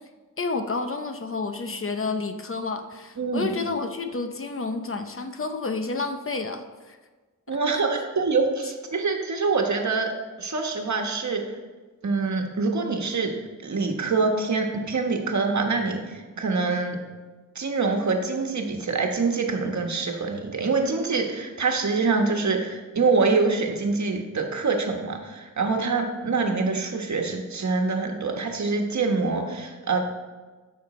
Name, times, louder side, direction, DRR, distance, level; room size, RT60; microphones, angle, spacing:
voice 1, 0.4-7.0 7.5-7.8, left 3 dB, 40° left, 7 dB, 0.7 m, -30 dB
voice 2, 3.2-3.6 7.5-10.1 10.4-11.4 12.0-13.3 13.6-17.0 17.5-30.0, right 4 dB, 60° right, 3 dB, 1.3 m, -25 dB
12.5 x 5.9 x 4.3 m, 1.3 s
wide cardioid pair, 120°, 33 cm